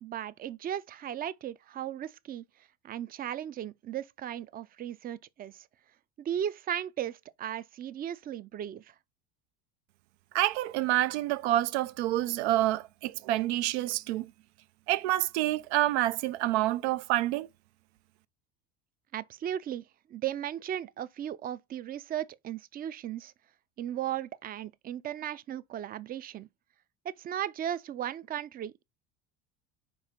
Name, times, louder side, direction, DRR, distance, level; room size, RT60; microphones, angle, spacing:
voice 1, 0.0-2.4 2.8-5.7 6.2-8.9 19.1-19.8 20.1-23.3 23.8-26.5 27.0-28.8, right 10 dB, 30° right, 0.4 m, -36 dB
voice 2, 10.3-14.3 14.9-17.5, right 15 dB, 90° right, 0.6 m, -28 dB
5.3 x 4.8 x 4.3 m
supercardioid pair, 125°, 32 cm